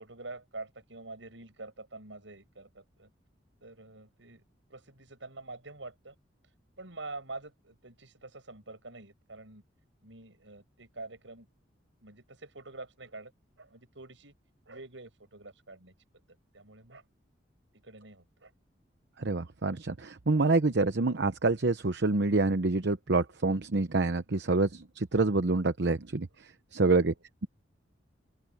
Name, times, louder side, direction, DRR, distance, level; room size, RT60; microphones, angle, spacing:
voice 1, 0.0-3.1 3.6-4.4 4.7-6.2 6.8-9.6 10.0-11.5 12.0-13.3 13.6-14.3 14.7-15.9 16.5-17.0 17.7-18.5 26.8-27.2, right 3 dB, 80° right, 6.9 m, -46 dB
voice 2, 19.2-26.3 26.7-27.1, right 3 dB, 65° right, 0.9 m, -27 dB
open air
head